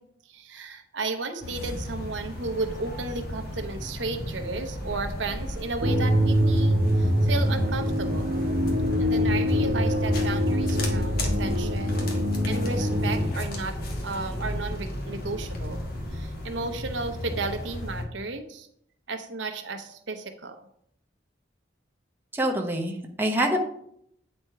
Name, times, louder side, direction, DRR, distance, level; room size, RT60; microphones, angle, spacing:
voice 1, 0.3-8.4 9.0-12.1 12.5-13.8 14.0-15.8 16.1-18.7 19.1-20.6, right 3 dB, 85° right, 7 dB, 0.9 m, -33 dB
sound 1, 1.4-18.0, left 1 dB, 55° left, 1.4 m, -34 dB
sound 2, 5.8-13.3, equal, 55° right, 0.9 m, -24 dB
voice 2, 22.3-23.6, right 1 dB, 10° right, 1 dB, 0.9 m, -25 dB
8.7 x 4.3 x 4.6 m, 0.70 s
head